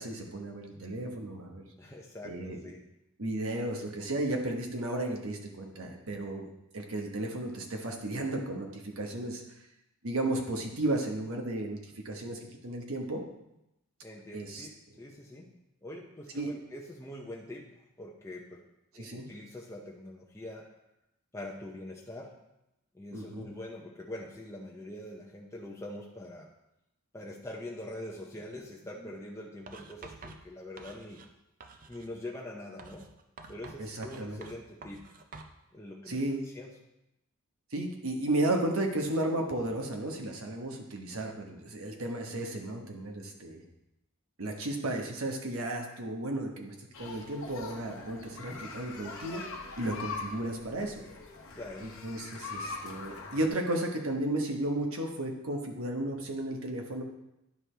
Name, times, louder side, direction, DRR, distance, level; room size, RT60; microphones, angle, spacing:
voice 1, 0.0-1.6 2.2-2.6 3.2-6.5 6.7-9.4 10.0-11.8 12.0-13.2 14.3-14.7 16.3-16.5 19.0-19.2 23.1-23.5 33.8-34.4 36.1-36.4 37.7-43.6 44.4-49.4 49.8-50.9 51.8-57.0, right 1 dB, 65° right, 2 dB, 1.1 m, -34 dB
voice 2, 1.8-2.8 14.0-15.5 15.8-18.6 18.9-20.7 21.3-22.4 22.9-26.5 27.1-31.2 31.9-33.1 33.5-35.0 35.7-36.8 51.6-51.9, left 1 dB, 15° left, -3 dB, 0.6 m, -44 dB
Writing, 29.7-31.3 31.6-32.1 32.8-35.6, right 3 dB, 35° right, 0.5 m, -49 dB
sound 1, 46.9-53.5, left 4 dB, 60° left, 1.0 m, -42 dB
10.5 x 4.7 x 3.4 m, 0.88 s
head